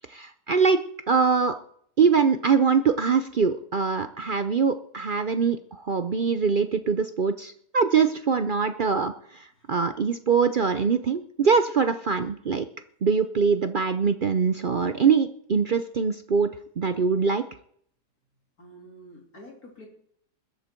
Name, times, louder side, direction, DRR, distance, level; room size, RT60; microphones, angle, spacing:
voice 1, 0.1-0.8 1.1-1.5 2.0-12.7 13.0-17.4, right 5 dB, 65° right, 10 dB, 0.5 m, -23 dB
voice 2, 18.6-19.9, equal, 60° left, 0 dB, 3.7 m, -48 dB
21.0 x 8.1 x 4.5 m, 0.65 s
omnidirectional pair, 1.7 m